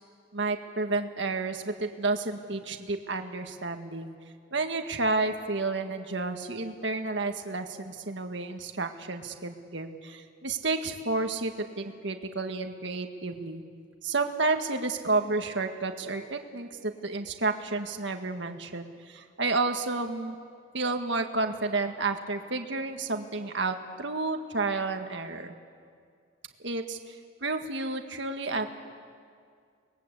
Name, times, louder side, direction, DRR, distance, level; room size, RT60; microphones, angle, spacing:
voice 1, 0.3-4.1 4.5-13.6 14.0-20.4 20.7-25.5 26.6-28.7, right 3 dB, 60° right, 5 dB, 1.8 m, -31 dB
30.0 x 21.0 x 8.3 m, 2.2 s
head